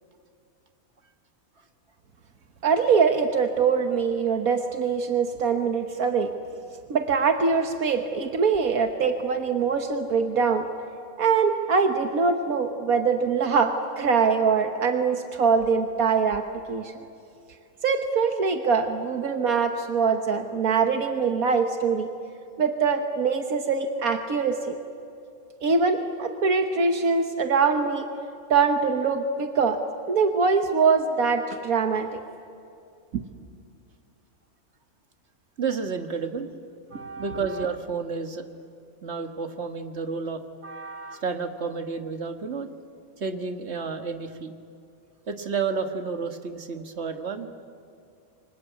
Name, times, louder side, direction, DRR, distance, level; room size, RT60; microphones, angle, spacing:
voice 1, 2.6-6.3 6.9-10.7 11.2-16.9 17.8-22.1 22.6-24.8 25.6-28.1 28.5-29.8 30.1-32.2 33.1-33.2, right 5 dB, 75° right, 6 dB, 1.7 m, -23 dB
voice 2, 35.6-36.5 36.9-38.5 39.0-42.7 43.2-44.5 45.3-47.5, right 5 dB, 50° right, 7 dB, 1.8 m, -31 dB
28.5 x 25.0 x 8.3 m, 2.5 s
omnidirectional pair, 1.5 m